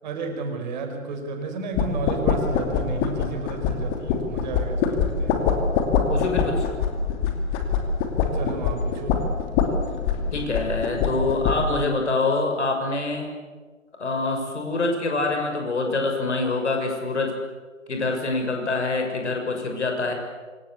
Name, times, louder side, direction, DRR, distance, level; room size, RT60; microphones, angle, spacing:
voice 1, 0.0-5.4 8.3-9.2, right 3 dB, 35° right, 5 dB, 4.7 m, -32 dB
sound 1, 1.8-11.8, left 5 dB, 20° left, 2.6 m, -24 dB
voice 2, 6.1-6.6 10.3-13.3 14.0-17.4 17.9-20.1, left 3 dB, 60° left, 3 dB, 7.0 m, -25 dB
26.5 x 24.5 x 8.3 m, 1.4 s
figure-of-eight pair, 135°, 40 cm